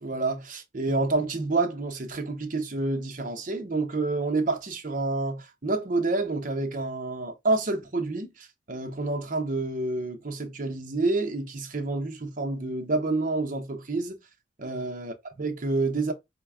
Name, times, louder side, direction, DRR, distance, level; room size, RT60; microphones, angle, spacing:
voice 1, 0.0-14.2 14.6-16.1, right 3 dB, 45° right, 0.7 m, -28 dB
4.1 x 2.2 x 3.4 m
head